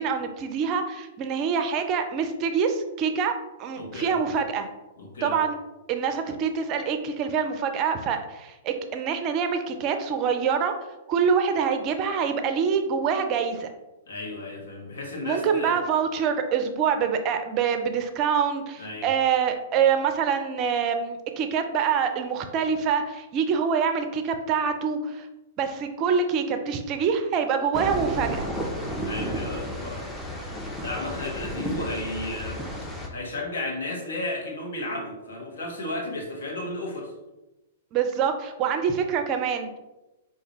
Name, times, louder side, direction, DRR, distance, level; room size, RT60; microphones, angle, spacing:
voice 1, 0.0-3.3 3.6-4.7 5.2-5.6 5.9-10.7 11.1-13.7 15.2-25.3 25.6-28.4 37.9-39.8, right 6 dB, 35° right, 7 dB, 0.5 m, -25 dB
voice 2, 3.8-4.2 5.0-5.4 14.1-15.8 18.8-19.1 29.0-30.2 30.7-32.6 33.1-37.1, left 2 dB, 70° left, -1 dB, 1.2 m, -33 dB
sound 1, 27.7-33.1, equal, 10° left, 0.7 m, -32 dB
5.0 x 2.6 x 3.0 m, 1.0 s
figure-of-eight pair, 110°, 0 cm